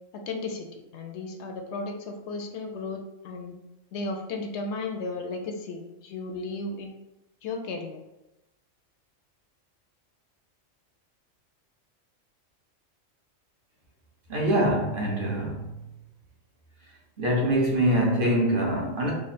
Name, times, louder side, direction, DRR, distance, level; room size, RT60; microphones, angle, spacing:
voice 1, 0.1-3.6 3.9-7.0 7.4-8.0, left 3 dB, 65° left, 4 dB, 0.8 m, -34 dB
voice 2, 14.3-15.7 17.2-19.1, right 1 dB, 45° right, -2 dB, 0.9 m, -24 dB
3.6 x 2.0 x 4.1 m, 0.93 s
omnidirectional pair, 1.3 m